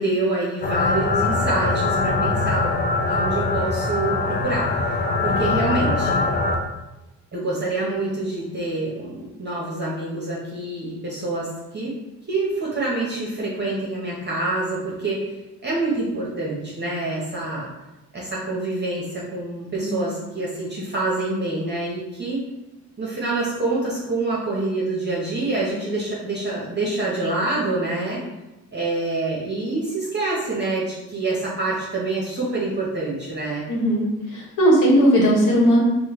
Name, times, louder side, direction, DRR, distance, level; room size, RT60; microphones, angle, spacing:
voice 1, 0.0-2.7 3.1-6.2 7.3-11.5 11.7-12.0 12.3-15.3 15.6-17.7 18.1-22.4 23.0-28.2 28.7-33.6, right 2 dB, 30° right, -5 dB, 0.8 m, -26 dB
sound 1, 0.6-6.5, left 3 dB, 30° left, 0.5 m, -22 dB
voice 2, 33.7-35.8, equal, 60° left, -3 dB, 1.1 m, -18 dB
3.2 x 2.1 x 3.0 m, 1.0 s
supercardioid pair, 70°, 36 cm